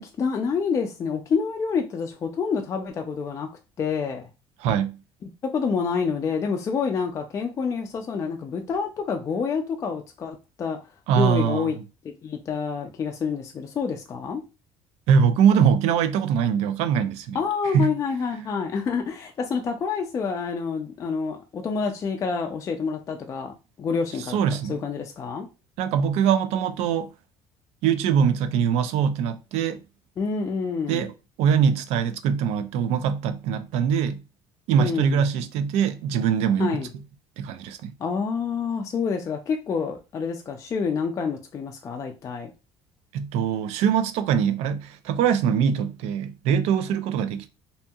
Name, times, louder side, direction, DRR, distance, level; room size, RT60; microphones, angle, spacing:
voice 1, 0.2-3.5 3.8-4.3 5.4-10.8 11.1-11.8 12.0-14.4 17.3-24.4 24.7-25.5 30.2-31.1 34.7-35.2 36.6-36.9 38.0-42.5, left 5 dB, 30° left, 0.3 m, -28 dB
voice 2, 4.6-5.0 11.1-11.8 15.1-17.4 17.7-17.9 24.3-24.8 25.8-27.1 27.8-29.8 30.9-31.1 31.4-34.2 34.7-36.8 37.4-37.9 43.1-47.5, right 7 dB, 80° right, 0.4 m, -22 dB
2.7 x 2.7 x 2.2 m
cardioid pair, 150°, 11 cm